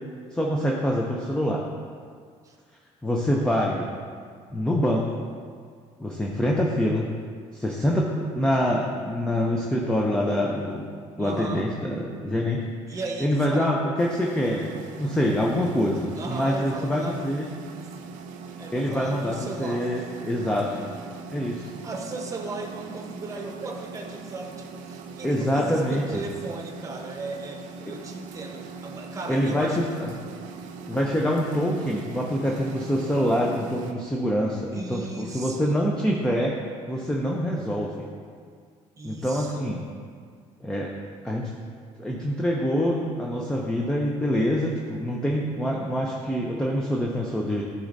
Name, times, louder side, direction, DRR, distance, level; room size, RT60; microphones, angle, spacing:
voice 1, 0.3-1.6 3.0-3.9 4.5-5.1 6.0-7.1 7.5-10.9 11.2-12.6 12.9-17.5 18.7-20.7 21.3-21.7 25.2-26.0 29.3-30.1 30.9-36.5 36.9-38.1 39.0-39.8 40.6-40.9 41.2-41.5 42.0-47.6, equal, 5° left, -2 dB, 0.5 m, -25 dB
voice 2, 11.2-11.7 12.9-13.7 16.1-17.3 18.6-19.9 21.8-29.8 34.7-35.8 39.0-39.7, right 3 dB, 25° right, 1 dB, 0.9 m, -36 dB
sound 1, 14.0-33.9, right 5 dB, 75° right, 0.5 m, -41 dB
11.5 x 4.1 x 2.6 m, 2.1 s
cardioid pair, 120°, 13 cm